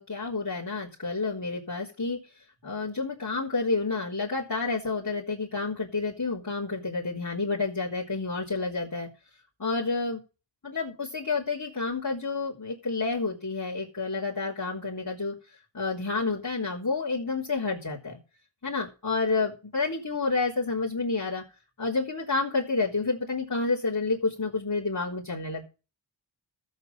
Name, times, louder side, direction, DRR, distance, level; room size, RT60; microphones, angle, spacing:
voice 1, 0.0-2.2 2.6-9.1 9.6-10.2 10.6-15.3 15.7-18.2 18.6-21.4 21.8-25.7, left 3 dB, 45° left, -6 dB, 3.9 m, -29 dB
13.5 x 8.2 x 5.6 m, 0.32 s
wide cardioid pair, 45°, 46 cm